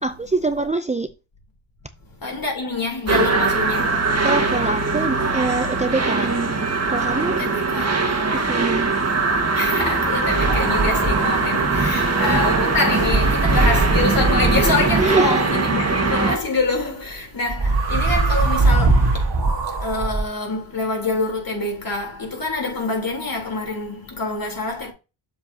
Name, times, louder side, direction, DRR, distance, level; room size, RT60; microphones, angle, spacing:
voice 1, 0.0-1.1 4.2-6.4 6.9-7.4 8.3-8.9 11.9-12.4 15.0-15.4, right 3 dB, 15° right, 0.4 m, -24 dB
voice 2, 2.2-4.0 7.3-7.9 9.3-19.4 19.8-24.9, left 3 dB, 45° left, 3.5 m, -26 dB
sound 1, 3.1-16.4, right 3 dB, 35° right, 1.6 m, -21 dB
sound 2, 10.4-15.1 17.5-20.2, right 3 dB, 65° right, 2.3 m, -21 dB
7.6 x 7.4 x 2.8 m
cardioid pair, 80°, 47 cm